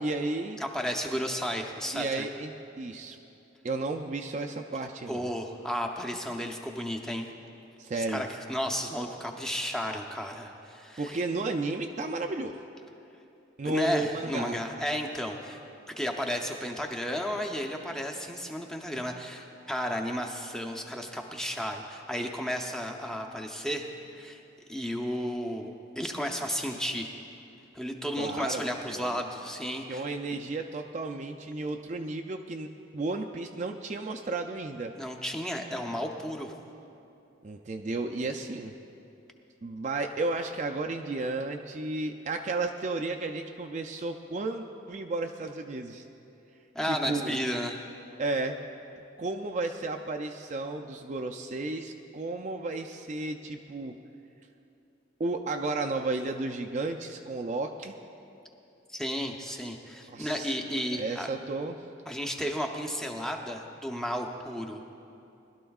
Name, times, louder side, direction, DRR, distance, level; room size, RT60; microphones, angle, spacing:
voice 1, 0.0-0.6 1.9-3.2 3.6-5.3 7.8-8.3 11.0-12.6 13.6-14.6 28.2-28.6 28.9-29.2 29.9-32.7 32.9-34.9 37.4-38.7 39.6-46.0 46.8-47.4 48.2-48.6 49.2-53.9 55.2-57.9 60.1-60.6 60.9-61.8, right 3 dB, 35° right, 4 dB, 0.4 m, -33 dB
voice 2, 0.6-2.3 5.1-7.3 8.0-11.2 13.6-15.6 16.0-23.9 24.1-24.4 24.7-27.1 27.7-30.0 35.0-36.5 46.7-47.8 58.9-61.3 62.1-64.8, equal, 5° left, 1 dB, 0.6 m, -33 dB
20.5 x 12.0 x 2.4 m, 2.8 s
head